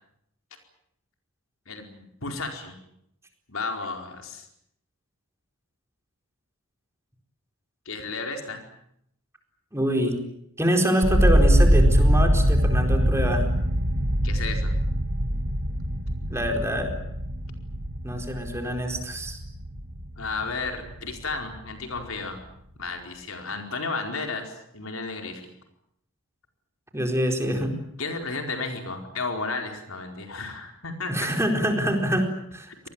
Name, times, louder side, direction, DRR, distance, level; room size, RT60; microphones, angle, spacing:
voice 1, 1.7-2.7 3.5-4.5 7.8-8.6 14.2-14.7 20.2-22.4 22.8-25.4 28.0-31.1, left 3 dB, 75° left, 4 dB, 4.7 m, -33 dB
voice 2, 9.7-10.2 10.6-13.4 16.2-16.9 18.0-19.4 26.9-27.8 31.1-32.9, equal, 15° right, 4 dB, 4.6 m, -25 dB
sound 1, 11.0-21.0 21.3-22.0, equal, 55° right, 2.3 m, -23 dB
26.0 x 20.0 x 8.9 m, 0.75 s
head